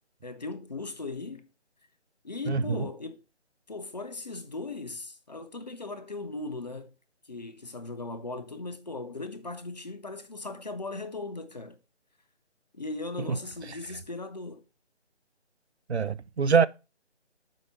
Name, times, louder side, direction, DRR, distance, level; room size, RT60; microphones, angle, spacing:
voice 1, 0.2-1.5 2.2-3.2 3.7-6.9 7.2-11.8 12.7-14.6, left 3 dB, 35° left, 0.8 m, -38 dB
voice 2, 2.5-2.9 13.3-13.4 13.6-13.8 15.9-16.7, right 5 dB, 65° right, 0.5 m, -25 dB
7.7 x 4.9 x 5.4 m
figure-of-eight pair, 155°, 35 cm